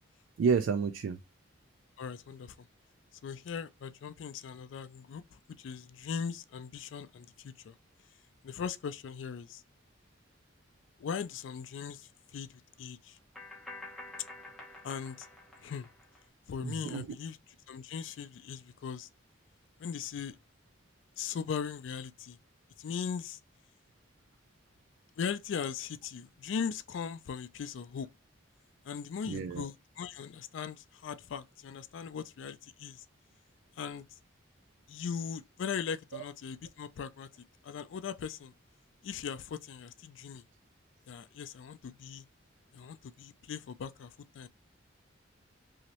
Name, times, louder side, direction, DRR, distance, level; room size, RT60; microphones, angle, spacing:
voice 1, 0.4-1.2 16.6-17.0 29.3-29.7, right 5 dB, 85° right, 0.3 m, -30 dB
voice 2, 2.0-2.7 3.2-7.8 8.4-9.6 11.0-13.2 14.8-15.3 15.6-15.9 16.5-17.4 17.7-19.1 19.8-20.4 21.2-22.4 22.8-23.4 25.2-28.1 28.8-33.1 33.8-34.2 34.9-37.3 37.6-38.5 39.0-40.4 41.1-42.2 42.7-44.5, left 6 dB, 75° left, 0.3 m, -39 dB
sound 1, 13.3-16.2, left 2 dB, ahead, 0.8 m, -48 dB
3.0 x 2.8 x 2.8 m
head